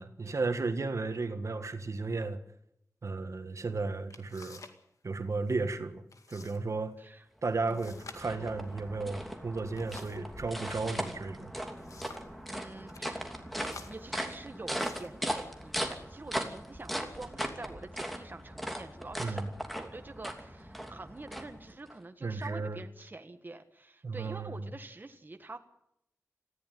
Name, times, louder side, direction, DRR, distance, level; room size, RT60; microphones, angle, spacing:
voice 1, 0.0-2.4 3.0-4.6 5.0-6.0 6.3-7.0 7.4-11.5 19.2-19.5 22.2-22.8 24.0-24.7, right 3 dB, 65° right, 8 dB, 1.7 m, -34 dB
sound 1, 3.6-3.7 4.1-4.8 5.1-5.6 6.1-6.6 6.9-7.0 7.7-10.3 11.3-12.4 12.8-13.1 13.6-15.2 16.0-16.2 16.7-17.2, left 4 dB, 85° left, 2.1 m, -52 dB
sound 2, 7.5-22.0, equal, ahead, 2.9 m, -39 dB
voice 2, 7.7-8.0 12.5-13.3 13.6-19.4 19.7-25.6, right 2 dB, 35° right, 7 dB, 1.5 m, -46 dB
19.0 x 15.0 x 9.3 m, 0.76 s
wide cardioid pair, 90°, 5 cm